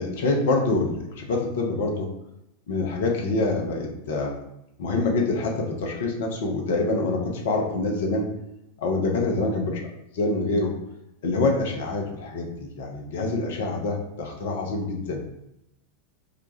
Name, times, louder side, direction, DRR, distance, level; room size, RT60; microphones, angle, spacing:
voice 1, 0.0-2.1 2.7-4.4 4.8-8.3 8.8-9.8 10.1-10.7 11.2-15.3, left 3 dB, 55° left, 1 dB, 0.7 m, -26 dB
2.9 x 2.3 x 4.0 m, 0.83 s
figure-of-eight pair, 90°, 0 cm